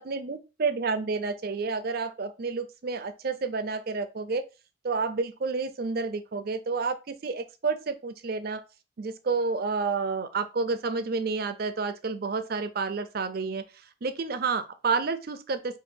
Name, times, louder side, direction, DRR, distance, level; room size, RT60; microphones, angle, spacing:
voice 1, 0.0-4.4 4.8-8.6 9.0-13.6 14.0-15.8, right 4 dB, 55° right, 0.5 m, -30 dB
7.3 x 2.5 x 2.6 m
head